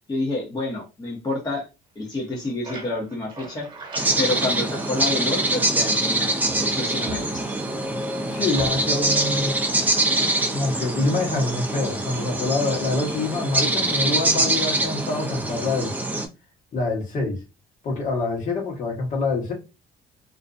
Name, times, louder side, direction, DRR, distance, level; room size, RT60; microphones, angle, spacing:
voice 1, 0.1-1.7 2.0-3.7 4.2-7.4, left 2 dB, 25° left, 0.7 m, -28 dB
sound 1, 2.2-6.1 6.4-7.8 8.5-9.1, right 2 dB, 30° right, 1.1 m, -40 dB
sound 2, 3.9-16.3, right 2 dB, 10° right, 0.5 m, -24 dB
voice 2, 8.3-9.5 10.5-16.0 16.7-17.4 17.8-19.5, left 3 dB, 50° left, 1.1 m, -26 dB
2.5 x 2.1 x 2.5 m
cardioid pair, 110°, 17 cm